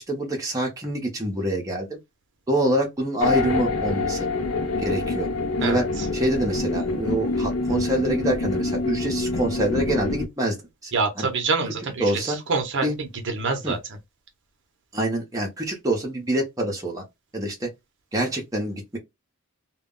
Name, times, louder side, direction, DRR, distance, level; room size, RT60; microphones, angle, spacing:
voice 1, 0.0-2.0 2.5-4.3 4.8-5.3 5.6-5.9 6.1-10.6 10.8-10.9 11.2-11.3 12.0-12.4 12.8-12.9 13.6-13.8 14.9-17.0 17.3-17.7 18.1-19.0, right 1 dB, 15° right, 0.7 m, -26 dB
sound 1, 3.2-10.3, left 3 dB, 70° left, 0.5 m, -26 dB
voice 2, 5.6-6.1 10.9-14.0, right 4 dB, 55° right, 0.6 m, -26 dB
2.2 x 2.0 x 3.6 m
head